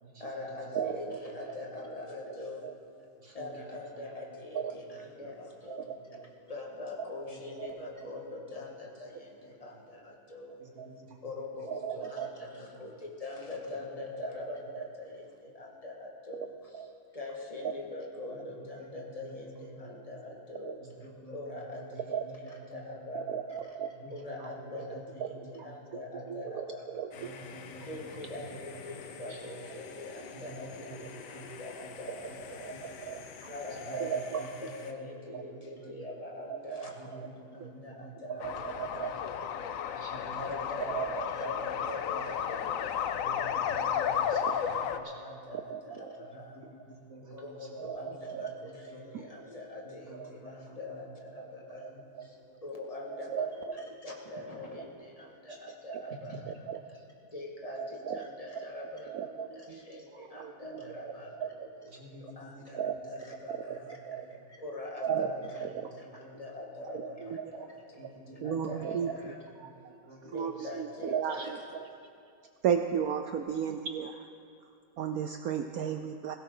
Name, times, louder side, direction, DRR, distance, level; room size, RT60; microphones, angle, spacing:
voice 1, 0.2-3.1 3.3-6.0 6.5-10.6 11.2-23.8 24.1-27.2 27.8-32.9 33.4-38.8 40.3-46.7 47.3-57.0 57.3-61.9 62.2-69.4 70.2-71.6, left 2 dB, 20° left, -1 dB, 1.6 m, -44 dB
voice 2, 0.7-1.2 2.4-2.7 4.5-4.8 5.7-6.0 7.6-7.7 10.8-10.9 11.7-12.3 14.2-14.9 16.7-16.9 20.6-20.8 22.1-22.3 23.1-23.9 24.4-24.5 25.2-25.7 26.2-27.4 32.6-33.5 33.9-34.5 35.3-35.4 36.5-36.9 37.6-37.7 38.3-39.2 40.2-40.4 40.8-41.5 44.3-44.6 45.5-46.1 47.8-48.6 48.9-49.3 50.1-50.3 51.4-51.5 51.8-51.9 53.1-53.7 55.9-56.2 56.5-56.8 57.8-58.3 58.6-58.7 59.1-60.0 60.3-61.1 61.4-61.7 62.7-63.0 63.5-64.4 65.0-65.3 65.6-65.9 66.8-67.5 68.4-69.3 69.6-69.7 70.3-71.9 72.6-74.2 75.0-76.4, right 8 dB, 75° right, 7 dB, 0.8 m, -35 dB
voice 3, 10.6-11.2 18.8-18.9 19.3-19.9 20.8-21.4 21.7-21.9 22.3-22.4 22.7-22.8 24.0-24.1 24.4-24.5 25.1-25.2 25.7-25.8 26.1-26.2 27.2-27.9 28.2-28.3 30.3-30.7 31.3-31.4 33.9-34.2 34.9-35.0 35.3-35.4 35.8-35.9 37.0-38.1 38.5-38.6 39.0-39.1 39.9-40.4 42.1-42.2 43.1-45.4 46.3-46.6 47.1-47.6 48.0-48.1 48.6-49.0 49.9-50.5 50.9-51.0 51.9-52.0 60.8-60.9 61.9-62.8 64.1-64.3 65.2-65.3 65.7-66.4 68.0-68.5 69.6-69.7 70.0-70.3, right 2 dB, 40° right, -3 dB, 2.2 m, -50 dB
sound 1, 27.1-34.9, left 6 dB, 65° left, 1.3 m, -48 dB
sound 2, 38.4-45.0, left 8 dB, 90° left, 0.7 m, -33 dB
17.0 x 16.0 x 3.8 m, 2.5 s
omnidirectional pair, 2.1 m